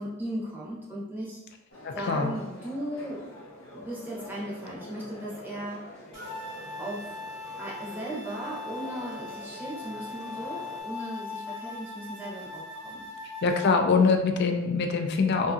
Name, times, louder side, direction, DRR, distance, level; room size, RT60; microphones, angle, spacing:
voice 1, 0.0-1.4 1.9-3.3 3.7-6.0 6.8-7.2 7.6-13.1, right 1 dB, 10° right, -6 dB, 0.7 m, -37 dB
sound 1, 1.7-10.8, left 1 dB, 85° left, 0.7 m, -46 dB
voice 2, 1.8-2.3 13.4-15.5, left 4 dB, 50° left, 5 dB, 0.3 m, -24 dB
sound 2, 6.1-13.8, left 3 dB, 60° right, 1.0 m, -40 dB
2.6 x 2.6 x 2.3 m, 1.0 s
head